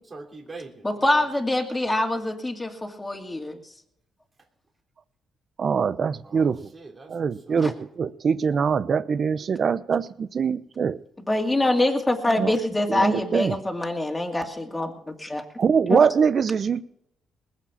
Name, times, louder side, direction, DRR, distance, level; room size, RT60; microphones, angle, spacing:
voice 1, 0.1-1.1 6.2-7.7, right 3 dB, 30° right, 0 dB, 3.2 m, -43 dB
voice 2, 0.8-3.6 7.6-7.7 11.3-15.4, left 1 dB, 15° left, 2 dB, 2.3 m, -25 dB
voice 3, 5.6-6.6 7.1-11.0 12.4-12.6 12.9-13.5 15.6-16.8, right 6 dB, 50° right, 15 dB, 0.8 m, -23 dB
20.0 x 7.5 x 7.3 m, 0.76 s
cardioid pair, 90°, 0 cm